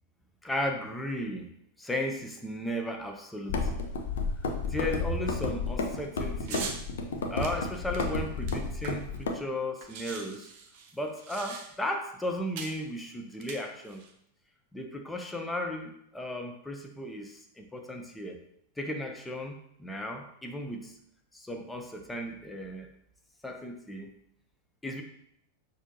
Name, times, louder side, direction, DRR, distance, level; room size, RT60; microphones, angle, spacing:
voice 1, 0.4-1.5 1.8-3.7 4.6-6.8 7.3-10.5 10.9-14.0 14.7-18.4 18.8-21.0 21.3-22.9 23.4-24.1 24.8-25.0, left 1 dB, 5° left, 2 dB, 0.6 m, -35 dB
sound 1, 3.5-9.3, left 3 dB, 60° left, 0.6 m, -32 dB
sound 2, 6.5-6.8 7.4-9.2 9.5-9.6 9.8-11.9 12.6-12.8 13.3-14.1, right 6 dB, 45° right, 0.5 m, -41 dB
6.1 x 2.7 x 2.6 m, 0.74 s
figure-of-eight pair, 90°, 0 cm